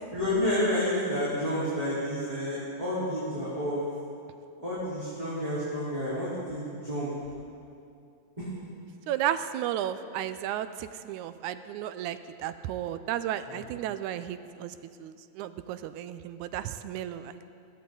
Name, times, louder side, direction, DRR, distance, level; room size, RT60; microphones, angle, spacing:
voice 1, 0.1-3.8 4.6-7.1 8.4-8.5 13.5-13.6, left 1 dB, 10° right, -12 dB, 4.0 m, -30 dB
voice 2, 9.1-17.4, right 11 dB, 90° right, 12 dB, 2.1 m, -34 dB
21.5 x 16.5 x 3.9 m, 2.5 s
omnidirectional pair, 3.4 m